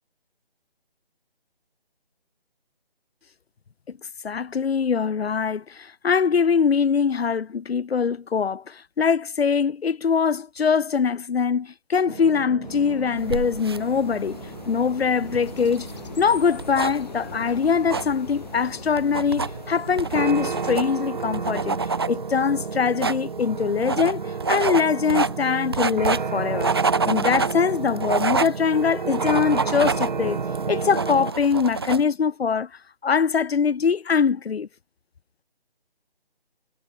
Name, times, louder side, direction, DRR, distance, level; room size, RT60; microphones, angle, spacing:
voice 1, 4.2-14.4 14.7-15.9 16.2-21.8 22.1-26.7 27.0-30.4 30.7-32.7 33.0-34.7, left 6 dB, 80° left, 0.5 m, -23 dB
sound 1, 12.1-31.3, right 5 dB, 50° right, 1.1 m, -32 dB
sound 2, 12.6-20.8, left 5 dB, 45° left, 1.4 m, -41 dB
sound 3, 13.2-32.0, right 4 dB, 25° right, 0.7 m, -29 dB
figure-of-eight pair, 150°, 31 cm